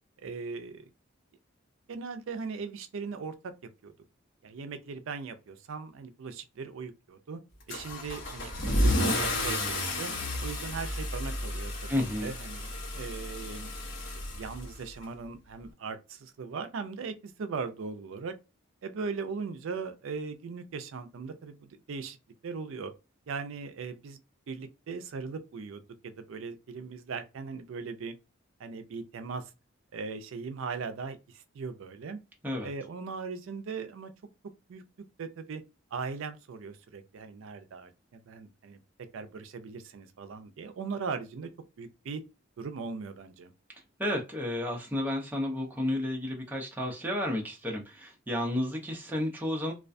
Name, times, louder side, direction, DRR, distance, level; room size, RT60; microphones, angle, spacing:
voice 1, 0.2-0.9 1.9-3.5 3.8-3.9 4.4-7.4 7.7-10.1 10.4-11.9 12.2-13.7 14.3-18.3 18.8-22.2 22.4-22.9 23.3-24.2 24.5-28.2 28.6-29.5 29.9-32.2 32.6-34.1 34.7-34.8 35.2-35.6 35.9-38.8 39.1-41.5 41.8-42.2 42.6-43.5, right 5 dB, 70° right, 0.4 m, -39 dB
Car / Engine starting / Accelerating revving vroom, 7.7-15.0, left 1 dB, 65° left, 0.9 m, -31 dB
voice 2, 11.9-12.3 32.4-32.7 44.0-49.7, left 1 dB, 10° right, 0.5 m, -32 dB
2.3 x 2.2 x 2.5 m
head